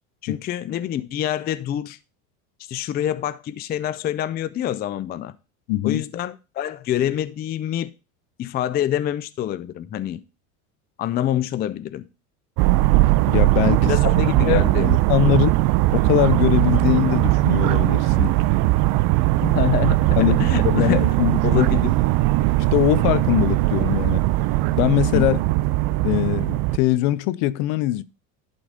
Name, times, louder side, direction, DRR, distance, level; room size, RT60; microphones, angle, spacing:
voice 1, 0.2-2.0 2.6-5.3 5.8-7.9 8.4-10.2 11.0-12.1 13.8-14.9 19.4-21.1 21.4-22.0 25.1-25.3, left 11 dB, 25° left, 0.4 m, -26 dB
voice 2, 5.7-6.0 13.3-15.5 15.9-18.4 20.2-21.7 22.7-24.2 24.8-25.4 26.0-28.0, left 15 dB, 65° left, 0.7 m, -22 dB
sound 1, 12.6-26.8, right 18 dB, 55° right, 0.6 m, -19 dB
11.5 x 4.0 x 4.9 m
supercardioid pair, 120°, 41 cm